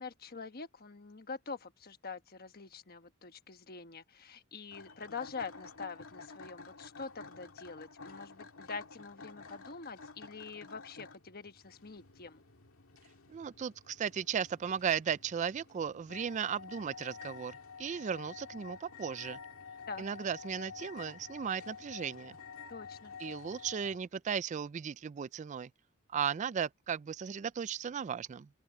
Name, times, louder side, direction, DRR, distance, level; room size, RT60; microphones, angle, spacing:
voice 1, 0.0-12.4 19.9-20.0 22.7-23.1, left 4 dB, 45° left, 1.2 m, -45 dB
sound 1, 4.7-24.0, left 5 dB, 75° left, 2.1 m, -50 dB
voice 2, 13.3-19.4 20.0-22.3 23.2-25.7 26.1-28.5, right 7 dB, 35° right, 0.3 m, -36 dB
open air
head